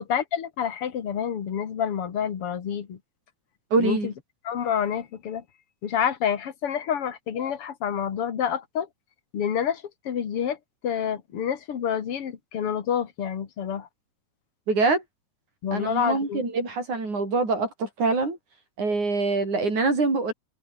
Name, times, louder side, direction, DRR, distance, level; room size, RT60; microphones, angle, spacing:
voice 1, 0.1-3.0 3.8-4.1 4.4-5.4 5.8-8.9 9.3-10.6 10.8-13.9 15.6-16.5, left 8 dB, 50° left, 2.8 m, -28 dB
voice 2, 3.7-4.1 14.7-15.0 15.7-18.4 18.8-20.3, right 3 dB, 75° right, 9.6 m, -24 dB
omnidirectional pair, 3.4 m